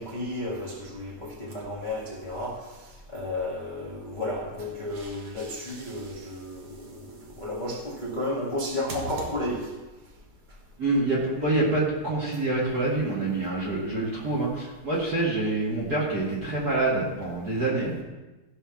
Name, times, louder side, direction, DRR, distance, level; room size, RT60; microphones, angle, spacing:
voice 1, 0.0-9.7, left 1 dB, 25° left, -5 dB, 0.9 m, -33 dB
sound 1, 1.5-2.6 4.5-9.9, right 2 dB, 55° right, 2.1 m, -45 dB
voice 2, 10.8-17.9, right 2 dB, 35° right, -5 dB, 1.7 m, -26 dB
15.5 x 5.7 x 5.9 m, 1.1 s
omnidirectional pair, 4.4 m